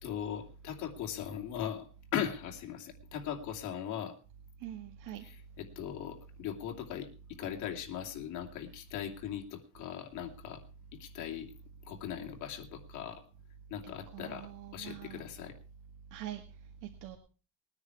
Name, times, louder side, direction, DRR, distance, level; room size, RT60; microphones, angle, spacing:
voice 1, 0.0-4.2 5.2-10.6 10.9-11.5 11.8-13.2 13.7-15.6, left 9 dB, 65° left, 2 dB, 2.7 m, -39 dB
voice 2, 4.6-5.2 13.8-15.2 16.1-16.4 17.0-17.2, right 11 dB, 85° right, 3 dB, 2.0 m, -44 dB
20.0 x 9.8 x 4.7 m, 0.36 s
cardioid pair, 165°, 31 cm